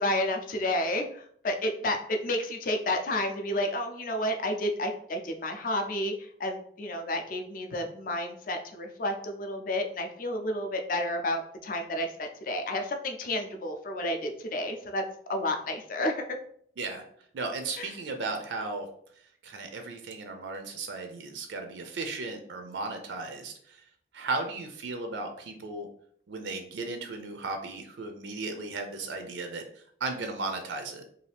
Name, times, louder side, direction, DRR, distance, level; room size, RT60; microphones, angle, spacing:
voice 1, 0.0-15.0 15.3-16.2 17.8-17.9, left 1 dB, 50° left, 4 dB, 0.4 m, -31 dB
voice 2, 17.3-18.9 19.4-23.8 24.1-25.9 26.3-29.6 30.0-31.0, right 3 dB, 80° right, 5 dB, 0.4 m, -35 dB
2.6 x 2.4 x 3.3 m, 0.64 s
head